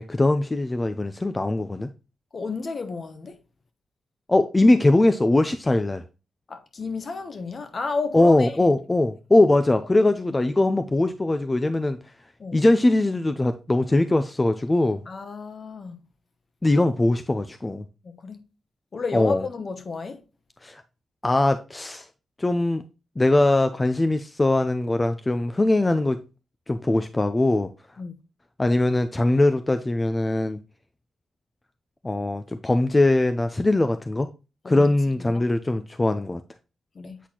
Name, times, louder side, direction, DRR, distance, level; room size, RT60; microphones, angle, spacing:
voice 1, 0.0-1.9 4.3-6.0 8.1-12.0 12.5-15.0 16.6-17.8 19.1-19.4 20.6-20.8 21.2-22.1 22.4-22.8 23.2-26.2 26.7-27.7 28.6-30.6 32.0-34.3 34.7-36.4, left 2 dB, 25° left, 0.5 m, -21 dB
voice 2, 2.3-3.4 6.5-8.7 12.4-12.7 15.1-16.0 18.0-18.4 18.9-20.2 28.0-28.2 34.6-35.4 36.9-37.2, left 4 dB, 50° left, 1.0 m, -32 dB
8.2 x 4.2 x 2.9 m
cardioid pair, 70°, 0 cm